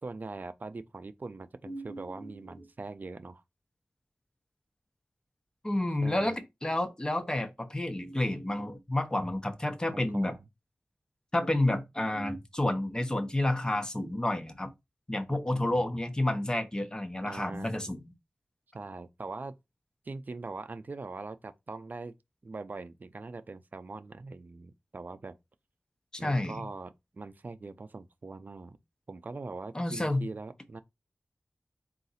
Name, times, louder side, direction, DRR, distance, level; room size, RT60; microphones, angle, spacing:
voice 1, 0.0-3.4 6.0-6.4 9.9-10.5 15.3-15.9 17.3-17.9 18.7-19.6 20.0-22.1 22.4-25.4 26.2-28.8 29.1-30.8, right 3 dB, 50° right, 0.4 m, -42 dB
voice 2, 1.7-2.3 5.6-10.3 11.3-14.7 15.1-18.0 26.1-26.6 29.7-30.3, left 1 dB, 20° left, 0.6 m, -30 dB
3.8 x 2.4 x 4.1 m
wide cardioid pair, 90°, 4 cm